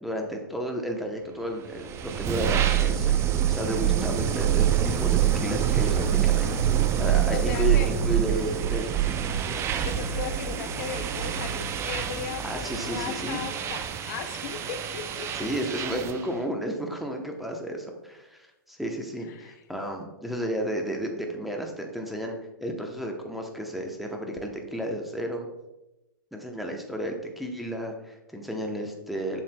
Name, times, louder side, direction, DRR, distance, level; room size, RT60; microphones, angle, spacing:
voice 1, 0.0-3.2 3.5-9.2 12.4-13.4 15.4-22.4 22.6-25.5 26.3-29.4, equal, ahead, 2 dB, 0.8 m, -32 dB
sound 1, 1.6-16.3, right 10 dB, 20° right, 0.4 m, -26 dB
voice 2, 7.3-7.9 9.8-15.5 19.3-19.5, left 9 dB, 50° left, 8 dB, 0.5 m, -37 dB
7.3 x 5.7 x 2.2 m, 0.96 s
hypercardioid pair, 120°, 12 cm